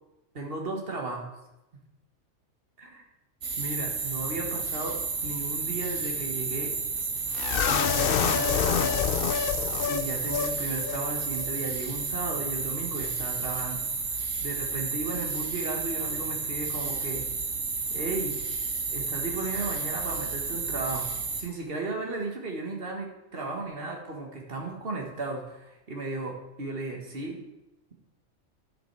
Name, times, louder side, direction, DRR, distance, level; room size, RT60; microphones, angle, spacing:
voice 1, 0.3-1.3 2.8-2.9 3.6-6.7 7.7-8.9 9.3-9.4 9.8-17.3 17.9-18.4 18.9-21.1 21.4-27.4, right 3 dB, 45° right, 1 dB, 1.9 m, -35 dB
sound 1, 3.4-21.4, right 4 dB, 65° right, 1.7 m, -32 dB
sound 2, 7.3-10.5 10.8-11.0 11.3-11.5, left 8 dB, 60° left, 0.6 m, -27 dB
10.0 x 7.2 x 4.8 m, 0.96 s
omnidirectional pair, 1.4 m